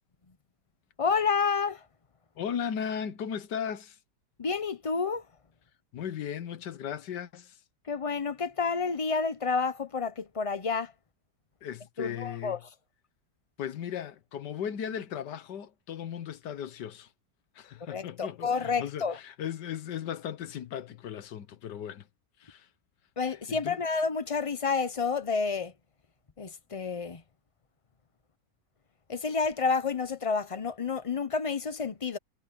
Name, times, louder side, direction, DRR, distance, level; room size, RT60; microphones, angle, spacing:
voice 1, 1.0-1.8 4.4-5.2 7.9-10.9 12.0-12.6 17.9-19.2 23.2-25.7 26.4-27.2 29.1-32.2, left 5 dB, 50° left, 0.4 m, -29 dB
voice 2, 2.4-4.0 5.9-7.6 11.6-12.6 13.6-17.1 17.5-22.1 22.4-22.7 23.5-23.8, left 8 dB, 80° left, 1.7 m, -37 dB
omnidirectional pair, 1.8 m